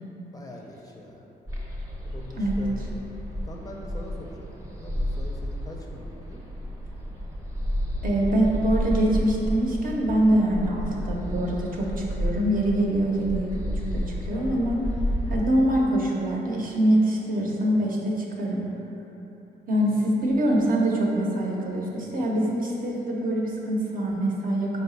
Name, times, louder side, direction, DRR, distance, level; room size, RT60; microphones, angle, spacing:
voice 1, 0.3-1.2 2.1-3.0 3.4-6.4 19.9-20.1, left 1 dB, 20° left, -1 dB, 0.4 m, -43 dB
sound 1, 1.5-15.4, equal, 20° right, 0.7 m, -31 dB
voice 2, 8.0-14.8 15.3-18.6 19.7-24.8, right 1 dB, 55° right, -2 dB, 0.7 m, -24 dB
4.1 x 2.2 x 3.9 m, 3.0 s
cardioid pair, 75°, 17 cm